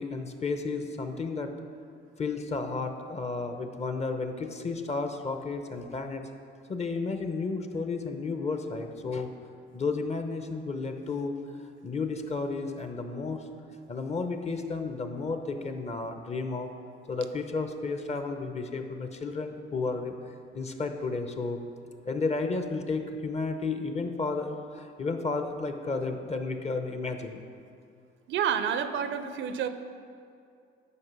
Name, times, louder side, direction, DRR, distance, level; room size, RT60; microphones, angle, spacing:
voice 1, 0.0-1.5 2.2-6.2 6.7-9.3 9.7-11.4 11.8-13.5 13.9-16.7 17.1-20.1 20.5-21.6 22.1-27.4, left 3 dB, 35° left, 6 dB, 0.8 m, -32 dB
voice 2, 28.3-29.7, right 8 dB, 75° right, 10 dB, 0.6 m, -29 dB
9.7 x 5.0 x 6.1 m, 2.4 s
cardioid pair, 90°, 20 cm